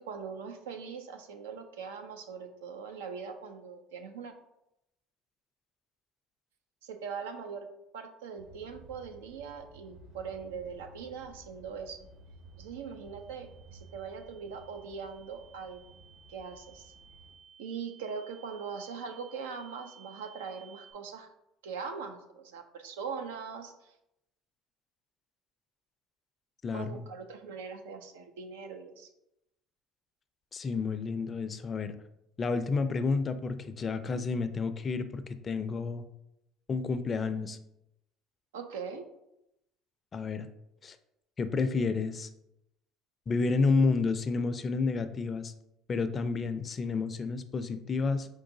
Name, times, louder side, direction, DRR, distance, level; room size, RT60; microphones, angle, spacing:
voice 1, 0.0-4.3 6.8-7.7 7.9-12.1 12.6-16.0 16.3-16.9 17.6-21.3 21.6-23.9 26.7-29.1 38.5-39.1, right 6 dB, 85° right, 6 dB, 0.5 m, -41 dB
sound 1, 8.4-17.3, right 2 dB, 65° right, 1.4 m, -55 dB
sound 2, 12.0-20.9, right 7 dB, 50° right, 1.3 m, -58 dB
voice 2, 26.6-27.0 30.5-32.0 32.4-36.0 36.7-37.6 40.1-40.5 40.8-41.0 41.4-42.3 43.3-45.5 45.9-48.3, left 4 dB, 35° left, 11 dB, 0.4 m, -30 dB
4.6 x 3.8 x 2.6 m, 0.86 s
hypercardioid pair, 75°, 0 cm